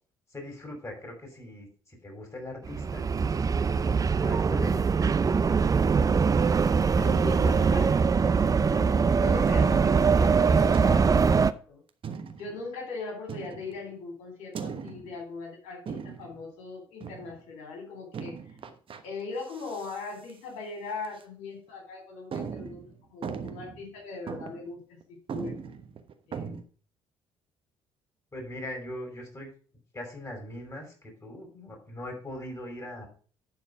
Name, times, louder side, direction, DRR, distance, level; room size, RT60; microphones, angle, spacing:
voice 1, 0.3-3.1 3.7-5.4 28.3-29.5 29.9-33.1, left 1 dB, 25° left, 1 dB, 5.6 m, -41 dB
sound 1, 2.7-11.5, right 5 dB, 30° right, 0.5 m, -23 dB
voice 2, 7.0-11.8 12.4-18.6 19.0-22.8 23.1-25.6 26.3-26.6, left 3 dB, 70° left, 2 dB, 3.6 m, -40 dB
sound 2, 10.7-11.4 12.0-12.6 13.3-13.9 14.5-15.2 15.9-16.4 17.0-17.4 18.1-19.0 19.4-20.0 20.3-20.4 21.0-21.2 21.7-21.8 22.3-23.9 24.3-24.7 25.0-25.1 25.3-26.6, right 6 dB, 45° right, 1.2 m, -39 dB
10.5 x 4.7 x 5.9 m, 0.42 s
hypercardioid pair, 50°, 12 cm